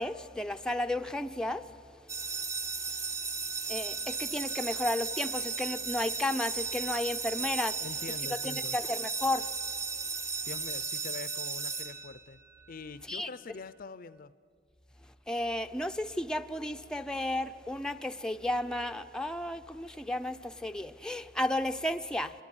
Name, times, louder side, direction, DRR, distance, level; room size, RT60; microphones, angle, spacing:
voice 1, 0.0-1.6 3.7-7.8 8.3-9.5 13.1-13.3 15.3-22.3, left 1 dB, 5° left, 0.6 m, -33 dB
sound 1, 2.1-12.5, right 4 dB, 20° right, 0.9 m, -35 dB
voice 2, 7.8-8.8 10.5-12.4 12.7-14.3, left 4 dB, 50° left, 0.6 m, -44 dB
26.5 x 20.5 x 9.7 m
head